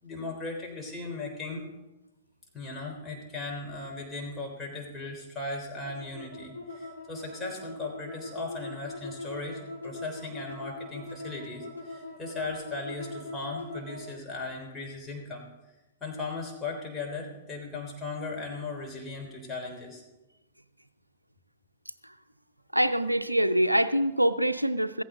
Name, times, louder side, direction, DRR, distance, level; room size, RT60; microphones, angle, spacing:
voice 1, 0.0-1.6 2.5-15.4 16.0-20.0, left 3 dB, 15° left, -1 dB, 3.6 m, -37 dB
sound 1, 5.8-14.1, left 2 dB, 90° left, 2.8 m, -41 dB
voice 2, 22.7-25.0, right 1 dB, 90° right, 13 dB, 0.5 m, -25 dB
15.0 x 15.0 x 3.8 m, 1.0 s
figure-of-eight pair, 105°, 0 cm